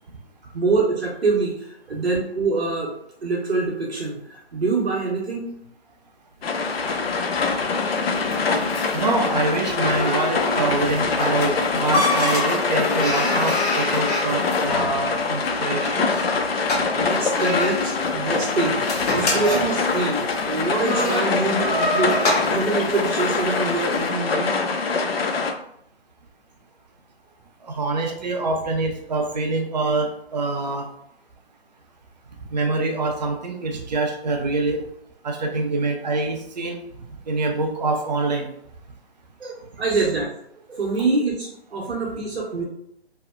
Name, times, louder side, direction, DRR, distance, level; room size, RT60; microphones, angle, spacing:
voice 1, 0.5-2.9 3.2-5.5 8.0-8.2 16.9-18.8 19.1-22.1 22.5-24.5 39.4-40.3 40.7-42.6, right 3 dB, 80° right, -4 dB, 0.7 m, -25 dB
sound 1, 6.4-25.5, left 4 dB, 70° left, 0.5 m, -24 dB
sound 2, 6.7-24.0, left 2 dB, 40° left, 0.8 m, -28 dB
voice 2, 8.9-16.2 27.6-30.8 32.5-34.8 35.2-36.8 37.3-38.5, right 3 dB, 40° right, 3 dB, 0.5 m, -25 dB
2.7 x 2.0 x 2.4 m, 0.75 s
figure-of-eight pair, 145°, 32 cm